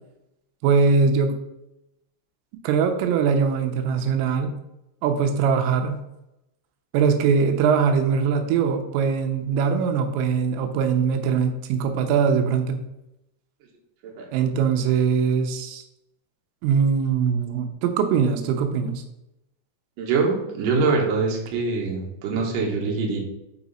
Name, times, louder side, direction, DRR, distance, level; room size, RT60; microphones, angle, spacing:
voice 1, 0.6-1.4 2.6-4.5 5.0-6.0 6.9-12.8 14.3-15.8 16.6-19.0, right 6 dB, 90° right, 7 dB, 3.4 m, -21 dB
voice 2, 20.0-23.2, right 4 dB, 65° right, -1 dB, 2.4 m, -24 dB
6.0 x 5.9 x 4.2 m, 0.87 s
omnidirectional pair, 5.6 m